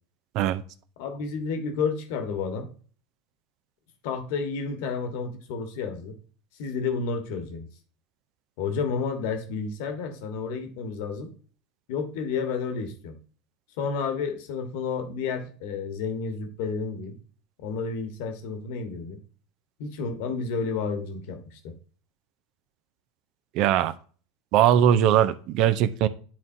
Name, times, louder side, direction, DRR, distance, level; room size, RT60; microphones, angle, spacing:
voice 1, 1.0-2.7 4.0-6.1 6.6-7.7 8.6-11.3 11.9-13.2 13.8-17.1 17.6-19.2 19.8-21.6, left 5 dB, 65° left, 1.3 m, -31 dB
voice 2, 23.5-23.9 24.5-26.1, right 10 dB, 55° right, 0.5 m, -20 dB
10.5 x 3.9 x 2.7 m
hypercardioid pair, 85°, 0 cm